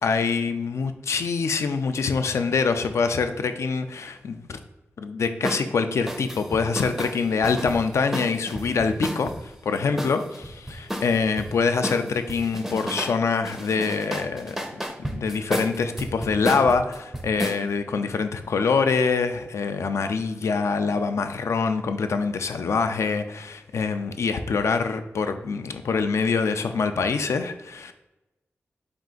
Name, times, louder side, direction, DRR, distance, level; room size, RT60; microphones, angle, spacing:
voice 1, 0.0-4.6 5.0-9.3 9.6-14.6 15.0-27.9, left 5 dB, 80° left, 8 dB, 0.3 m, -25 dB
sound 1, 5.4-5.6 6.1-9.4 10.0-11.5 11.8-13.2 13.4-17.6, equal, 5° right, 0.4 m, -31 dB
4.4 x 2.4 x 3.7 m, 1.0 s
wide cardioid pair, 120°, 5 cm